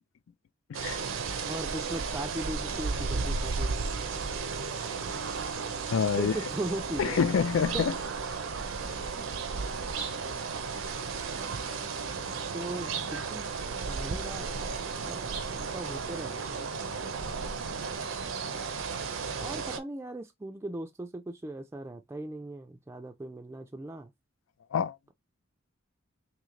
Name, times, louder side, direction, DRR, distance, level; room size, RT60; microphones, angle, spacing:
voice 1, 0.7-1.0 5.9-6.3 7.0-7.9 24.7-25.1, left 6 dB, 75° left, 0.4 m, -27 dB
sound 1, 0.7-19.8, right 5 dB, 80° right, 0.6 m, -34 dB
voice 2, 1.4-4.1 6.2-7.3 7.7-7.8 12.5-13.5 13.9-16.7 19.4-24.1, right 1 dB, 15° right, 0.3 m, -39 dB
3.1 x 3.1 x 3.7 m
head